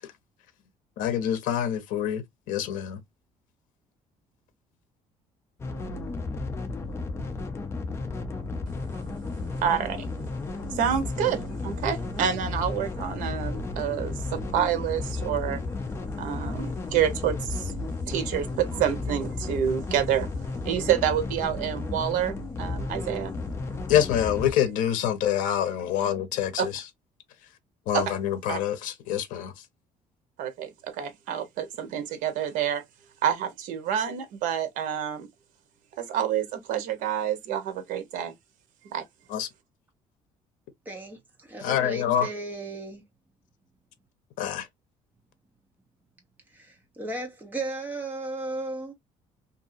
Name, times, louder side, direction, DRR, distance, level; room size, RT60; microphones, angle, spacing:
voice 1, 1.0-3.0 23.9-26.8 27.9-29.5 39.3-39.5 41.6-42.3 44.4-44.7, left 10 dB, 80° left, 0.6 m, -26 dB
sound 1, 5.6-24.5, left 3 dB, 20° left, 0.5 m, -33 dB
voice 2, 9.6-10.1 10.7-15.6 16.2-17.7 18.1-20.3 20.6-23.3 26.6-26.7 27.9-28.1 28.5-28.6 30.4-32.8 33.2-35.3 36.0-38.3 38.9-39.0, right 9 dB, 80° right, 0.8 m, -28 dB
voice 3, 40.9-43.0 46.5-48.9, right 2 dB, 15° right, 1.0 m, -35 dB
2.7 x 2.6 x 2.4 m
cardioid pair, 165°, 13 cm